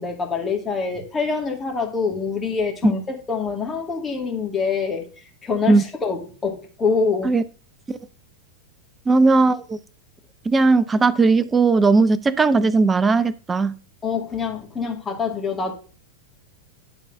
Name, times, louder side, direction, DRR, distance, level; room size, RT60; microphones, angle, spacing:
voice 1, 0.0-5.1 5.4-7.3 14.0-15.7, left 5 dB, 15° left, 2.2 m, -25 dB
voice 2, 9.1-9.8 10.5-13.7, right 3 dB, 15° right, 0.6 m, -17 dB
10.5 x 4.0 x 5.3 m
figure-of-eight pair, 90°, 0 cm